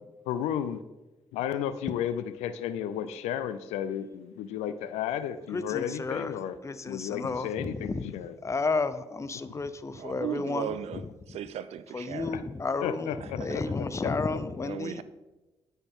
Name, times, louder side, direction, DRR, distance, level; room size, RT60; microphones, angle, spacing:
voice 1, 0.3-0.8 1.3-6.6 6.9-8.3 12.3-12.4 12.8-13.6 14.0-14.1 14.6-14.7, left 10 dB, 80° left, 13 dB, 0.5 m, -33 dB
voice 2, 5.5-8.0 8.4-11.0 11.9-15.0, left 3 dB, 25° left, 13 dB, 0.7 m, -32 dB
voice 3, 9.9-11.0 11.3-12.4 13.2-13.6 14.7-15.0, right 10 dB, 70° right, 14 dB, 0.7 m, -37 dB
9.6 x 9.2 x 3.7 m, 1.1 s
hypercardioid pair, 50°, 11 cm